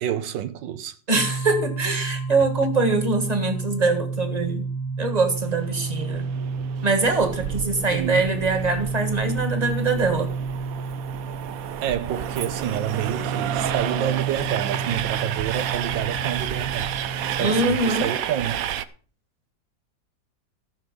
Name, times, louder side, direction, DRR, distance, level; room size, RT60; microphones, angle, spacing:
voice 1, 0.0-1.0 7.9-8.3 11.8-16.9 17.4-18.6, right 10 dB, 80° right, 1.4 m, -28 dB
sound 1, 1.1-17.6, right 4 dB, 55° left, 2.9 m, -31 dB
voice 2, 1.1-4.7 5.0-6.3 6.8-10.3 17.4-18.1, right 3 dB, 20° right, 1.7 m, -23 dB
Train, 5.4-18.9, right 11 dB, 65° right, 0.9 m, -31 dB
14.5 x 6.6 x 5.3 m
omnidirectional pair, 2.0 m